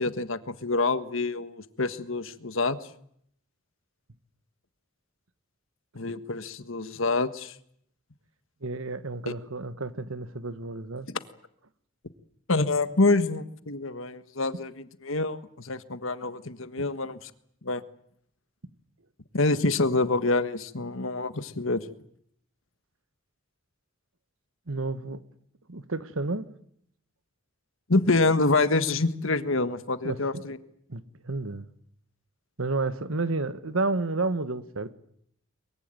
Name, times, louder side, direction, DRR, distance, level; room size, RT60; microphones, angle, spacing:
voice 1, 0.0-2.8 5.9-7.5 12.5-14.7 15.0-17.3 17.6-17.8 19.3-21.8 27.9-30.6, left 3 dB, 70° left, 1.5 m, -26 dB
voice 2, 8.6-11.1 24.7-25.2 25.7-26.5 30.0-30.4 30.9-31.6 32.6-34.9, right 3 dB, 70° right, 1.4 m, -31 dB
23.0 x 22.5 x 9.1 m
head